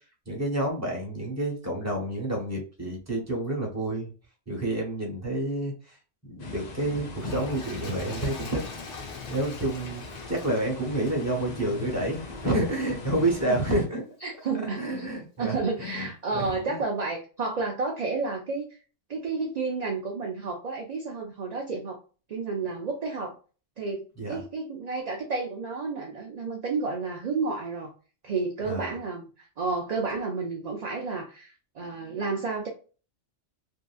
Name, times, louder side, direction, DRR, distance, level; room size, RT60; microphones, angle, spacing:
voice 1, 0.3-4.1 4.5-6.0 6.2-8.6 9.3-14.0 14.7-16.1 16.3-16.8 24.2-24.4 28.7-28.9, right 1 dB, 15° right, 0 dB, 0.9 m, -29 dB
sound 1, 6.4-13.9, left 3 dB, 45° left, 0.6 m, -40 dB
Toilet flush, 7.1-12.6 13.3-13.4, left 4 dB, 75° left, 1.2 m, -44 dB
voice 2, 14.2-15.1 15.4-18.7 19.1-22.0 22.3-23.3 23.8-27.9 28.2-32.7, right 4 dB, 50° right, 0 dB, 0.5 m, -31 dB
2.7 x 2.5 x 2.3 m, 0.36 s
omnidirectional pair, 1.2 m